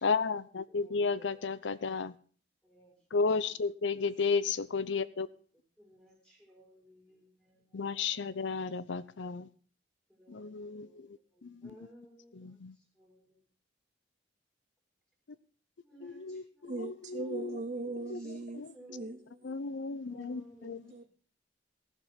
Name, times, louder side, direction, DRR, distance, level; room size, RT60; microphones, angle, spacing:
voice 1, 0.0-2.1 3.1-5.3 7.7-9.5 10.3-11.7 12.3-12.7 16.0-17.6 18.1-18.7 19.4-20.9, left 4 dB, 85° left, 0.6 m, -33 dB
voice 2, 0.7-1.4 2.6-3.2 5.8-8.3 10.1-12.5 12.9-13.4 15.8-16.9 17.2-17.6 18.2-19.1 20.1-21.1, right 1 dB, 5° left, 4.7 m, -58 dB
voice 3, 16.6-19.6 20.8-21.0, right 2 dB, 40° right, 0.7 m, -40 dB
15.5 x 7.3 x 5.7 m
head